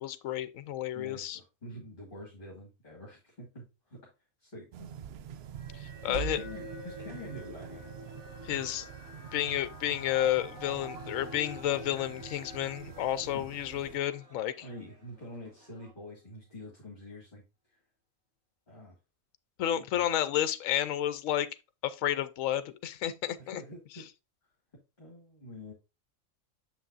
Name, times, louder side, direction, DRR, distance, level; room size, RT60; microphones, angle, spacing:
voice 1, 0.0-1.4 5.8-6.4 8.4-8.9 9.3-14.5 19.6-21.5 21.8-23.6, left 11 dB, 75° left, 1.0 m, -31 dB
voice 2, 0.9-4.0 4.4-5.3 6.1-7.9 8.4-8.6 13.3-13.5 14.6-17.4 17.7-17.8 18.7-18.9 19.8-20.1 23.4-24.0 25.0-25.7, left 1 dB, 40° left, 2.3 m, -47 dB
sound 1, 4.7-14.0, right 9 dB, 65° right, 0.7 m, -45 dB
sound 2, 5.6-15.1, equal, 20° right, 2.8 m, -48 dB
sound 3, 10.5-15.9, right 3 dB, 80° right, 4.2 m, -62 dB
7.2 x 5.8 x 2.6 m
omnidirectional pair, 1.4 m